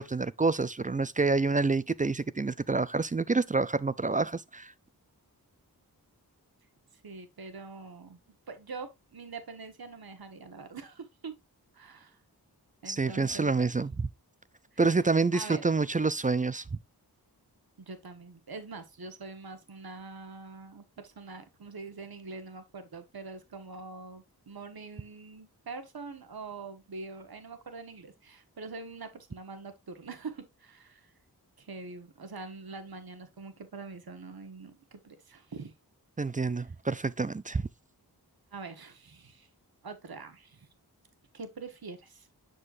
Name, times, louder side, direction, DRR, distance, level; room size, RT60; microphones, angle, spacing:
voice 1, 0.0-4.7 12.9-13.9 14.8-16.6 36.2-37.7, right 3 dB, 20° right, 0.3 m, -27 dB
voice 2, 7.0-8.2 8.5-11.4 11.7-12.2 12.8-13.7 14.7-14.8 15.3-15.7 17.8-31.1 31.6-35.7 38.5-39.5 39.8-40.7 41.3-42.3, right 4 dB, 70° right, 1.2 m, -44 dB
7.6 x 6.3 x 2.5 m
wide cardioid pair, 60°, 38 cm